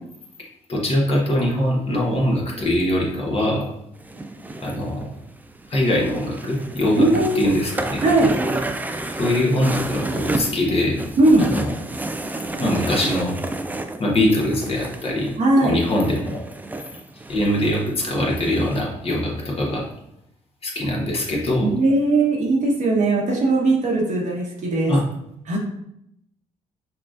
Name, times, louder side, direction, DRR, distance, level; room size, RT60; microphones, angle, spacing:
voice 1, 0.7-3.7 4.6-5.1 5.7-8.0 9.1-11.0 11.4-11.7 12.6-13.4 14.0-15.3 15.6-16.4 17.3-19.8 20.6-21.7 24.9-25.0, left 1 dB, 45° left, -2 dB, 1.2 m, -22 dB
sound 1, 4.0-18.8, right 2 dB, 10° right, 0.4 m, -30 dB
voice 2, 7.0-7.4 8.0-8.3 11.2-11.4 15.4-15.8 21.6-24.9 25.5-25.6, right 2 dB, 60° right, -1 dB, 1.2 m, -19 dB
5.8 x 2.4 x 2.5 m, 0.78 s
cardioid pair, 75°, 14 cm